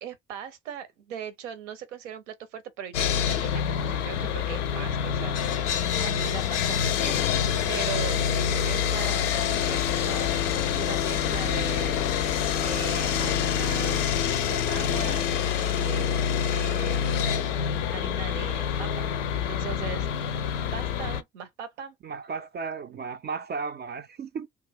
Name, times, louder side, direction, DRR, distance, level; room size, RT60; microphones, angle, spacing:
voice 1, 0.0-14.0 14.5-16.2 16.5-17.4 17.9-19.1 19.3-20.4 20.7-22.0, right 8 dB, 80° right, 0.7 m, -40 dB
Sawing, 2.9-21.2, left 8 dB, 80° left, 0.5 m, -26 dB
voice 2, 22.0-24.5, right 5 dB, 30° right, 0.4 m, -34 dB
2.3 x 2.3 x 3.3 m
figure-of-eight pair, 45°, 36 cm